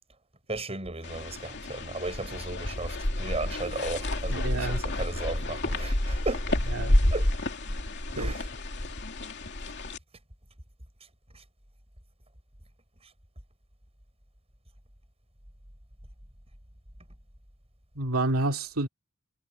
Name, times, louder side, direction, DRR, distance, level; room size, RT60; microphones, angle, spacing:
voice 1, 0.5-6.4 7.1-7.3 8.1-8.4, right 2 dB, 30° right, 7.1 m, -35 dB
sound 1, 1.0-10.0, left 1 dB, 55° left, 2.7 m, -29 dB
voice 2, 4.3-4.8 6.7-7.0 8.2-8.3 18.0-18.9, right 2 dB, 75° right, 2.5 m, -29 dB
head